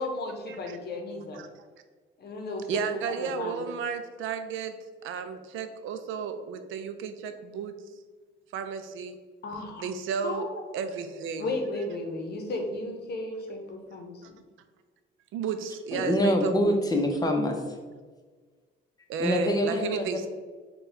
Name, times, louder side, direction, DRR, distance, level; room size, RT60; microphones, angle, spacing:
voice 1, 0.0-1.4 2.2-2.9 3.2-3.6 9.4-9.9 10.2-10.6 11.4-14.4, left 2 dB, 55° left, 3 dB, 0.8 m, -34 dB
voice 2, 2.7-4.8 5.0-7.7 8.5-9.2 9.8-10.5 10.7-11.5 14.2-14.3 15.3-16.8 19.1-20.3, right 6 dB, 80° right, 9 dB, 0.4 m, -33 dB
voice 3, 15.9-17.8 19.2-20.3, left 1 dB, 20° left, 3 dB, 0.7 m, -25 dB
3.9 x 2.3 x 3.9 m, 1.4 s
cardioid pair, 90°, 20 cm